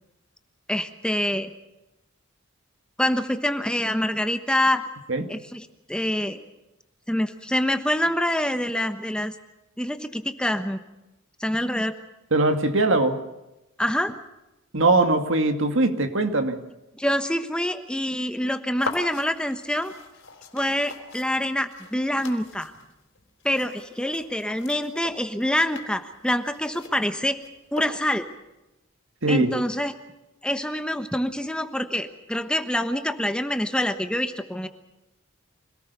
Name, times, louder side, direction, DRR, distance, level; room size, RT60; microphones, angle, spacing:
voice 1, 0.7-1.5 3.0-4.9 5.3-6.4 7.1-9.4 9.8-10.8 11.4-11.9 13.8-14.2 17.0-19.9 20.5-22.7 23.4-27.4 27.7-28.3 29.3-29.9 30.4-34.7, left 1 dB, 5° left, 8 dB, 1.2 m, -26 dB
voice 2, 12.3-13.2 14.7-16.6 29.2-29.5, right 2 dB, 70° right, 7 dB, 2.1 m, -21 dB
sound 1, 18.8-28.3, left 3 dB, 65° left, 3.8 m, -41 dB
25.5 x 18.5 x 6.9 m, 0.95 s
head